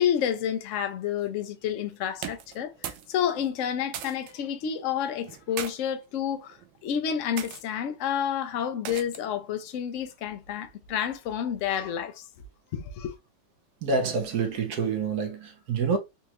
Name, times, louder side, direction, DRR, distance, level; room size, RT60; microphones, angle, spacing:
voice 1, 0.0-6.6 6.8-12.2 12.7-13.1, left 9 dB, 70° left, 0.7 m, -29 dB
sound 1, 2.1-3.1 3.4-4.3 5.2-5.7 6.5-6.8 7.4-7.6 8.8-9.3, right 10 dB, 90° right, 1.3 m, -38 dB
voice 2, 13.8-16.0, right 4 dB, 65° right, 1.2 m, -27 dB
4.2 x 2.4 x 2.9 m
omnidirectional pair, 1.9 m